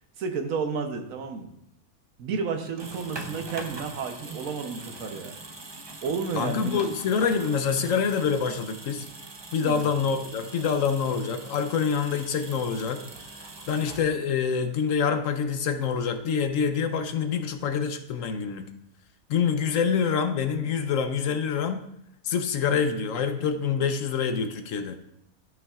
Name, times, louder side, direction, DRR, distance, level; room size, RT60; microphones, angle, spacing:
voice 1, 0.2-1.5 2.2-5.3 6.0-6.9 9.6-9.9, right 5 dB, 70° right, 6 dB, 1.2 m, -31 dB
sound 1, 2.6-14.5, right 2 dB, 35° right, 0.4 m, -42 dB
voice 2, 6.4-9.1 9.5-13.0 13.7-18.7 19.3-21.9 22.2-25.0, left 6 dB, 70° left, 8 dB, 1.0 m, -26 dB
13.0 x 5.8 x 2.4 m, 0.74 s
omnidirectional pair, 1.5 m